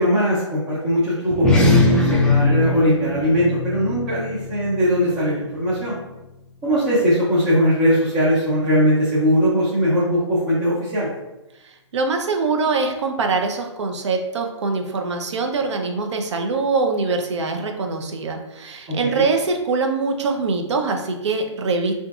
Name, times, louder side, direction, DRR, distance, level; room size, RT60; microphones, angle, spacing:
voice 1, 0.0-6.0 6.6-11.1 19.0-19.2, equal, 25° right, -8 dB, 0.7 m, -20 dB
sound 1, 1.3-6.1, left 2 dB, 5° left, 0.3 m, -21 dB
voice 2, 11.9-21.9, right 4 dB, 65° right, 4 dB, 0.6 m, -23 dB
3.6 x 2.6 x 2.3 m, 0.97 s
hypercardioid pair, 140°, 16 cm